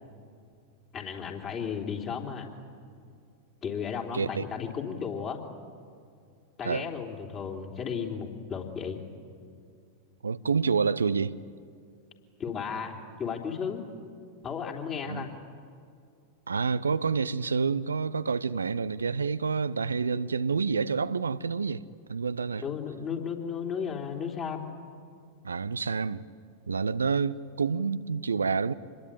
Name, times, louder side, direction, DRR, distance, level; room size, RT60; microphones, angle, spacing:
voice 1, 0.9-2.5 3.6-5.4 6.6-9.0 12.4-13.9 14.4-15.3 22.6-24.6, left 7 dB, 30° left, 3.5 m, -34 dB
voice 2, 4.1-4.4 6.6-6.9 10.2-11.3 15.1-15.3 16.5-21.8 22.1-22.6 25.4-26.2 26.7-28.7, right 5 dB, 75° right, 0.6 m, -28 dB
26.5 x 21.5 x 8.9 m
figure-of-eight pair, 90°, 0 cm